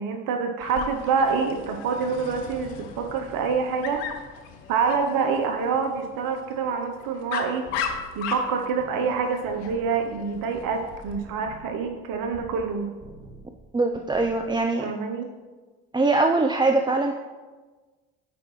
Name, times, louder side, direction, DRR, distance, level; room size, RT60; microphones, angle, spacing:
voice 1, 0.0-4.2 4.7-7.7 8.2-12.9 14.8-15.3, right 5 dB, 70° right, 5 dB, 0.7 m, -26 dB
Dog, 0.6-11.2, left 7 dB, 85° left, 0.7 m, -37 dB
sound 1, 7.6-9.2 9.4-12.7 13.0-13.6 13.9-14.5, right 2 dB, 30° right, 2.2 m, -47 dB
voice 2, 13.7-14.9 15.9-17.1, right 3 dB, 15° right, 4 dB, 0.5 m, -22 dB
10.5 x 4.8 x 3.1 m, 1.3 s
hypercardioid pair, 50°, 35 cm